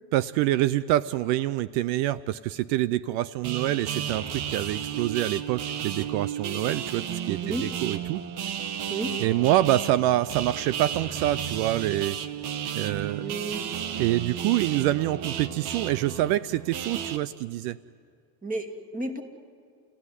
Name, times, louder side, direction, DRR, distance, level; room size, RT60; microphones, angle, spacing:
voice 1, 0.1-8.2 9.2-12.2 12.7-13.3 14.0-17.8, right 14 dB, 75° right, 18 dB, 0.7 m, -26 dB
sound 1, 3.4-17.2, right 8 dB, 50° right, 1.4 m, -33 dB
voice 2, 13.2-13.7 18.4-19.2, right 2 dB, 15° right, 5 dB, 2.5 m, -32 dB
29.0 x 17.0 x 9.9 m, 2.2 s
supercardioid pair, 100°, 49 cm